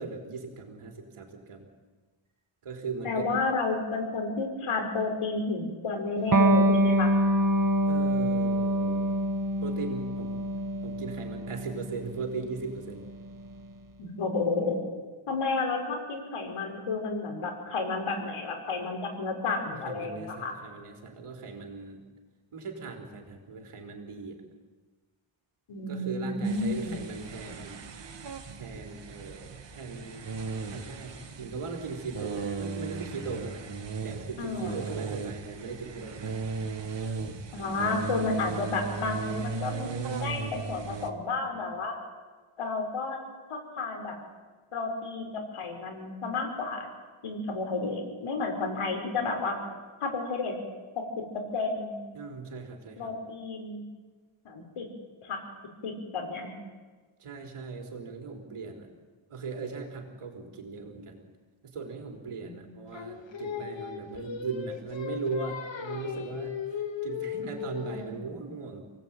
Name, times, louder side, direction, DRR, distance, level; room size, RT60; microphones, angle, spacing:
voice 1, 0.0-1.7 2.6-3.4 7.9-9.1 9.6-10.4 10.8-13.1 19.7-22.0 22.5-24.4 25.9-27.8 28.5-30.3 30.7-33.7 34.0-36.4 52.1-53.1 57.2-58.9 59.3-61.3 61.6-68.9, right 4 dB, 85° right, 3 dB, 4.2 m, -38 dB
voice 2, 3.0-7.1 14.0-14.8 15.3-20.5 25.7-27.0 34.4-34.8 37.5-41.9 42.6-43.2 43.5-44.2 44.7-46.9 47.2-49.6 50.0-50.5 51.0-51.2 51.5-52.0 53.0-53.8 54.5-54.9 55.2-55.4 55.8-56.6 62.4-62.7 67.8-68.2, left 3 dB, 80° left, 3 dB, 5.3 m, -31 dB
Electric guitar, 6.3-13.5, right 1 dB, 40° right, 2.1 m, -26 dB
sound 1, 26.4-41.1, right 5 dB, 60° right, 2.5 m, -37 dB
Singing, 62.9-68.1, left 7 dB, 60° left, 2.9 m, -37 dB
29.5 x 18.5 x 9.0 m, 1.4 s
wide cardioid pair, 95°, 50 cm